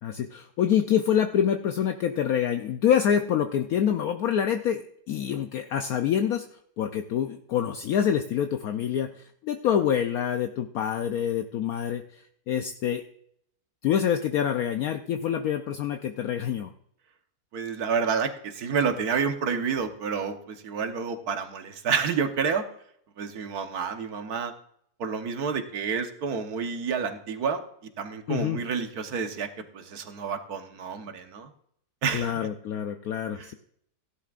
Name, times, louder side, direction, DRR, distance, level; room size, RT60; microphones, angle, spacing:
voice 1, 0.0-6.5 6.8-13.0 13.8-16.7 28.3-28.6 32.1-33.5, left 9 dB, 70° left, 6 dB, 1.1 m, -26 dB
voice 2, 17.5-22.6 23.2-24.5 25.0-31.5 32.0-32.5 33.4-33.5, right 6 dB, 70° right, 7 dB, 1.6 m, -29 dB
17.0 x 11.5 x 2.4 m, 0.70 s
omnidirectional pair, 1.7 m